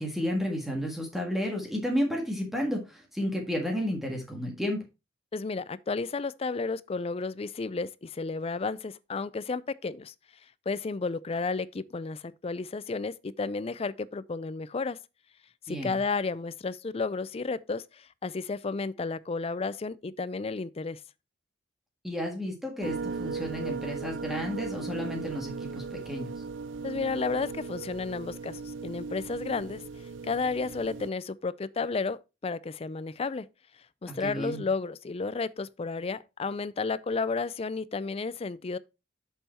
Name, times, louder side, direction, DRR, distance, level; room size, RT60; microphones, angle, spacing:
voice 1, 0.0-4.8 15.7-16.0 22.0-26.3 34.1-34.6, equal, ahead, 1.6 m, -32 dB
voice 2, 5.3-10.1 10.7-15.0 15.7-21.0 26.8-29.8 30.2-33.5 34.0-38.8, left 4 dB, 30° left, 0.4 m, -32 dB
sound 1, 22.8-31.1, right 4 dB, 75° right, 0.5 m, -37 dB
7.0 x 5.7 x 4.2 m
head